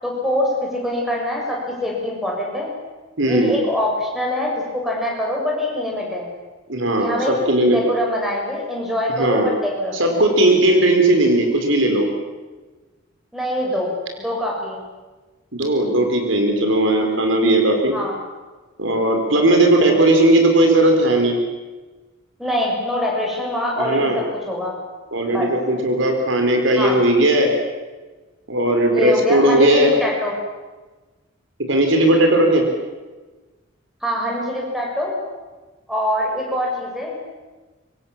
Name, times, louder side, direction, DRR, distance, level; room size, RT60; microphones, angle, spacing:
voice 1, 0.0-2.7 3.2-6.3 7.0-7.3 7.7-10.0 13.3-13.9 14.2-14.8 17.9-18.1 19.8-20.0 22.4-24.7 25.3-25.5 26.8-27.0 28.9-30.3 34.0-35.2 35.9-37.2, left 1 dB, ahead, -2 dB, 7.0 m, -24 dB
voice 2, 3.2-3.5 6.7-7.8 9.2-9.5 9.9-12.1 15.5-18.0 18.8-21.4 23.8-24.2 25.1-27.5 28.5-29.9 31.7-32.6, right 1 dB, 65° right, 4 dB, 4.5 m, -17 dB
26.0 x 24.5 x 7.4 m, 1.2 s
head